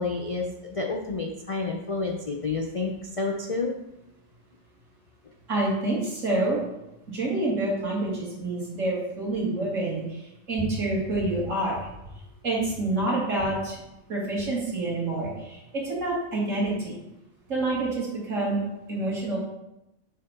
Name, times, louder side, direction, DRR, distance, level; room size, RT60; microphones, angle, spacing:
voice 1, 0.0-3.7, left 3 dB, 50° left, 1 dB, 0.4 m, -29 dB
voice 2, 5.5-6.6 7.1-10.2 10.5-11.9 12.4-13.8 14.1-17.0 17.5-18.6 18.9-19.4, right 2 dB, 65° right, -5 dB, 2.6 m, -27 dB
7.3 x 3.6 x 5.8 m, 0.90 s
omnidirectional pair, 1.4 m